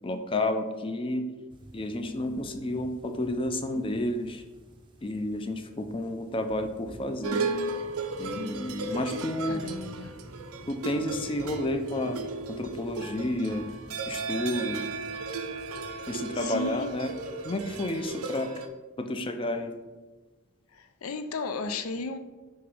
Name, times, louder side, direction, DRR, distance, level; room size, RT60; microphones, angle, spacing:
voice 1, 0.0-1.3 1.7-4.4 5.0-7.5 8.2-9.7 10.7-12.2 12.5-13.7 14.1-14.8 16.1-17.1 17.4-18.5 19.0-19.7, left 1 dB, 25° left, 0.4 m, -31 dB
sound 1, 1.5-18.3, right 1 dB, 20° right, 0.6 m, -50 dB
sound 2, 7.2-18.7, right 3 dB, 90° right, 0.6 m, -35 dB
voice 2, 9.5-10.1 16.3-16.9 20.7-22.2, left 3 dB, 80° left, 0.5 m, -34 dB
6.4 x 2.9 x 5.4 m
head